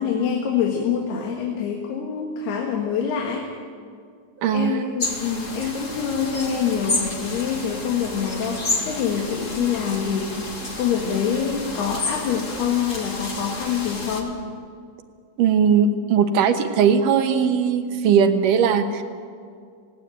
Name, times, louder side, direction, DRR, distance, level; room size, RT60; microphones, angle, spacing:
voice 1, 0.0-3.5 4.5-14.4, left 7 dB, 85° left, 1 dB, 3.7 m, -25 dB
voice 2, 4.4-4.8 15.4-19.0, right 7 dB, 70° right, 8 dB, 2.4 m, -19 dB
sound 1, 5.0-14.2, left 2 dB, 30° left, 1.5 m, -31 dB
18.5 x 17.5 x 9.0 m, 2.2 s
omnidirectional pair, 4.5 m